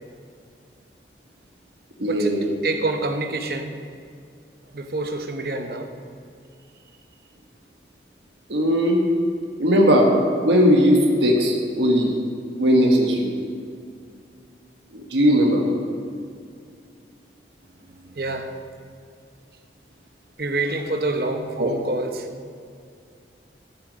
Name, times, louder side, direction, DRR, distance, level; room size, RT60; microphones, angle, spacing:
voice 1, 2.0-2.5 8.5-9.0 9.6-10.1 10.4-12.1 12.6-13.3 14.9-15.6 21.6-21.7, equal, 85° right, 0 dB, 1.4 m, -18 dB
voice 2, 2.6-3.7 4.7-5.9 17.9-18.5 20.4-22.3, right 2 dB, 55° right, 6 dB, 0.8 m, -27 dB
14.5 x 6.2 x 5.2 m, 2.3 s
head